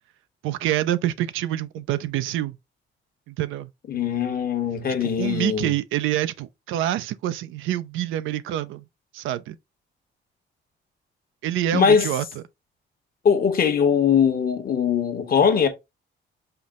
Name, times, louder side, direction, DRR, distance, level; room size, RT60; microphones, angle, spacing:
voice 1, 0.4-2.6 3.3-3.7 5.0-8.8 9.1-9.6 11.4-12.4, right 13 dB, 85° right, 0.4 m, -26 dB
voice 2, 3.9-5.7 11.7-12.1 13.2-15.7, left 7 dB, 50° left, 1.0 m, -21 dB
5.7 x 2.0 x 3.5 m
cardioid pair, 90°, 20 cm